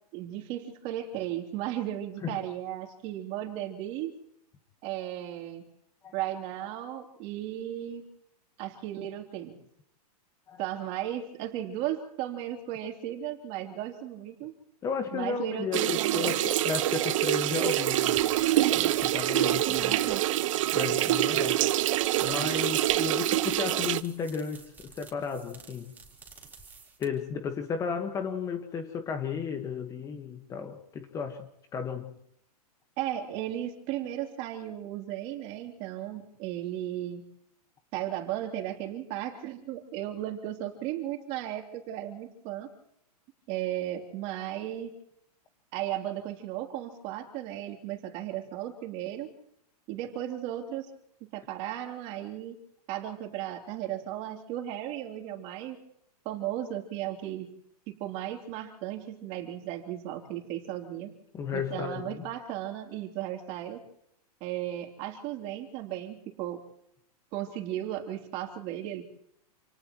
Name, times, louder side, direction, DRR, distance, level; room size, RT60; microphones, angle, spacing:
voice 1, 0.1-4.1 4.8-5.6 6.1-8.1 8.6-9.6 10.6-14.5 15.1-16.3 19.3-20.2 33.0-37.2 37.9-42.7 43.5-45.0 45.7-49.3 49.9-50.9 51.2-52.6 52.9-55.8 56.3-57.5 57.9-61.1 61.5-63.8 64.4-66.6 67.3-69.0, right 12 dB, 35° right, 3 dB, 3.4 m, -35 dB
voice 2, 14.8-18.2 18.7-19.9 20.7-21.6 22.2-25.9 27.0-32.2 61.3-62.2, left 6 dB, 15° left, 6 dB, 1.5 m, -34 dB
sound 1, 15.7-24.0, right 14 dB, 55° right, 0.9 m, -26 dB
sound 2, 17.6-27.3, right 4 dB, 10° right, 4.0 m, -51 dB
29.0 x 28.5 x 3.1 m, 0.76 s
hypercardioid pair, 160°, 20 cm